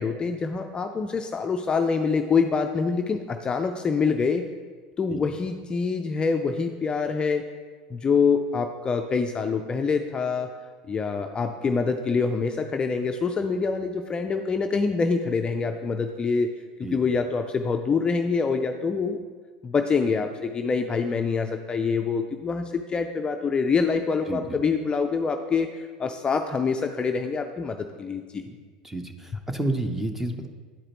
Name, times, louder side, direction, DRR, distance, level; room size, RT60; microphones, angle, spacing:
voice 1, 0.0-4.5 5.0-7.5 7.9-10.5 10.9-16.5 16.8-19.2 19.6-28.4, left 5 dB, 25° left, 6 dB, 0.4 m, -25 dB
voice 2, 28.8-30.5, right 2 dB, 5° right, 6 dB, 0.7 m, -30 dB
10.0 x 4.9 x 2.9 m, 1.5 s
hypercardioid pair, 95°, 4 cm